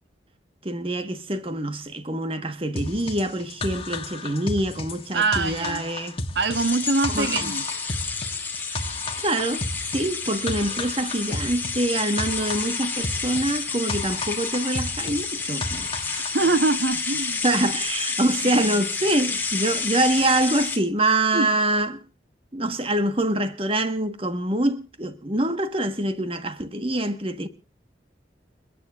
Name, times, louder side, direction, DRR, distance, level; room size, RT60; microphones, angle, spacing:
voice 1, 0.6-6.2 7.1-7.5 8.8-15.9 17.4-22.0 22.5-27.5, right 1 dB, 30° right, 1.5 m, -25 dB
sound 1, 2.8-16.5, left 2 dB, 30° left, 1.6 m, -33 dB
voice 2, 5.1-5.9 6.3-7.6 16.1-17.4 18.4-18.8 21.3-21.5, right 3 dB, 75° right, 1.4 m, -24 dB
sound 2, 6.5-20.8, left 4 dB, 10° left, 2.8 m, -30 dB
29.5 x 10.0 x 2.6 m
head